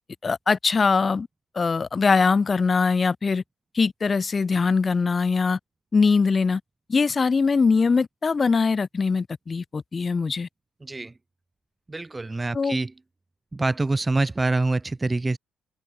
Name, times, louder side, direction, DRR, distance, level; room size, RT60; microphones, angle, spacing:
voice 1, 0.2-1.3 1.5-3.4 3.7-5.6 5.9-6.6 6.9-10.5 12.5-12.8, left 4 dB, 35° left, 2.7 m, -22 dB
voice 2, 10.8-11.1 11.9-12.9 13.5-15.4, right 2 dB, 20° right, 2.5 m, -25 dB
open air
cardioid pair, 90°, 0 cm